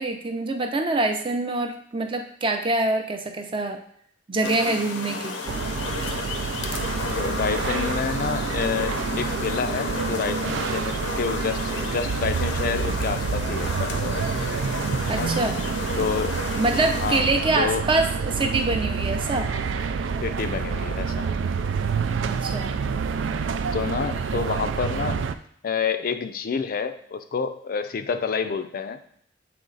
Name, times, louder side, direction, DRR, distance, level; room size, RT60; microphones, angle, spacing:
voice 1, 0.0-3.8 4.3-5.4 15.1-15.7 16.6-19.5 22.2-22.7, right 2 dB, 30° right, 5 dB, 0.6 m, -25 dB
sound 1, 4.4-17.2, left 3 dB, 85° left, 0.7 m, -32 dB
sound 2, 5.5-25.4, right 5 dB, 85° right, 0.4 m, -28 dB
voice 2, 7.1-14.2 15.0-15.3 16.0-16.4 17.0-17.3 17.6-17.8 20.2-21.3 23.7-25.2 25.6-29.0, left 5 dB, 50° left, 9 dB, 0.4 m, -28 dB
7.6 x 3.2 x 3.9 m, 0.66 s
head